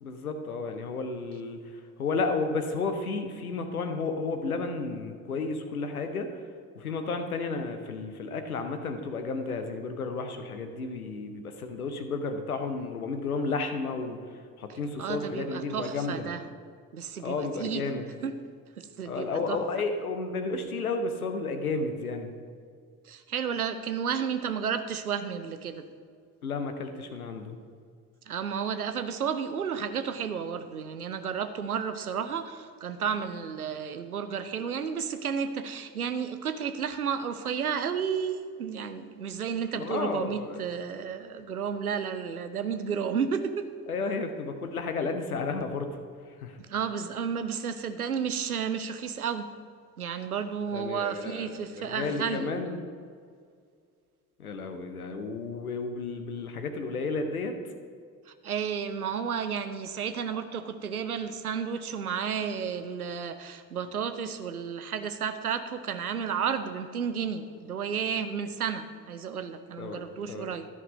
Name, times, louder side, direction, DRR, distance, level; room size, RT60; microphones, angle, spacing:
voice 1, 0.0-6.3 6.7-16.3 17.2-18.1 19.0-22.3 26.4-27.6 39.7-40.6 43.9-45.9 46.3-46.6 50.7-52.8 54.4-57.6 69.8-70.5, left 3 dB, 85° left, 7 dB, 0.7 m, -32 dB
voice 2, 14.7-16.4 16.9-17.9 18.2-18.3 18.8-19.6 23.0-25.8 28.3-43.7 46.7-49.5 50.0-52.5 58.3-70.7, right 7 dB, 90° right, 10 dB, 0.5 m, -32 dB
13.0 x 5.9 x 5.1 m, 2.1 s
figure-of-eight pair, 40°, 42 cm